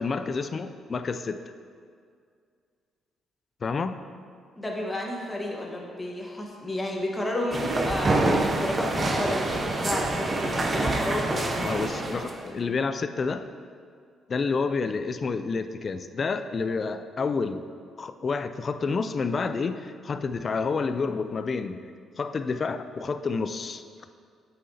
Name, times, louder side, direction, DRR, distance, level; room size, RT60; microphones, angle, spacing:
voice 1, 0.0-1.4 3.6-4.0 11.6-13.5 14.3-17.7 18.0-21.8 22.2-23.8, left 4 dB, 40° left, 10 dB, 0.3 m, -29 dB
voice 2, 4.6-11.7, left 1 dB, 15° left, -1 dB, 1.2 m, -31 dB
sound 1, 7.5-12.4, right 2 dB, 30° right, 0.6 m, -26 dB
8.3 x 5.6 x 2.7 m, 2.2 s
cardioid pair, 90°, 0 cm